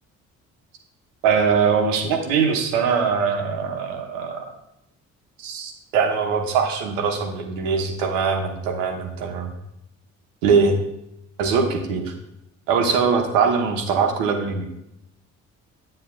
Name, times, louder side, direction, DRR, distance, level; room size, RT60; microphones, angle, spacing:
voice 1, 1.2-4.4 5.4-9.5 10.4-10.8 11.4-12.1 12.7-14.6, right 5 dB, 75° right, 4 dB, 1.0 m, -22 dB
8.7 x 7.7 x 2.3 m, 0.83 s
hypercardioid pair, 45°, 40 cm